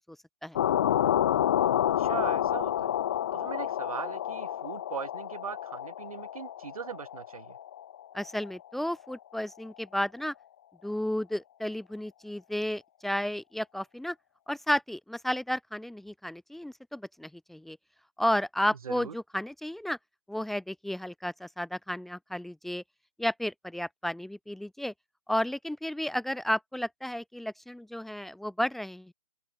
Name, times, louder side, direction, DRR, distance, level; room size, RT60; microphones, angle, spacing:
sound 1, 0.6-8.6, left 11 dB, 25° left, 0.4 m, -29 dB
voice 1, 2.0-3.0 3.3-7.6 18.8-19.1, right 6 dB, 70° right, 4.9 m, -39 dB
voice 2, 8.1-10.3 10.8-14.1 14.5-17.8 18.2-20.0 20.3-22.8 23.2-24.9 25.3-29.1, left 1 dB, ahead, 1.2 m, -32 dB
open air
hypercardioid pair, 160°, 19 cm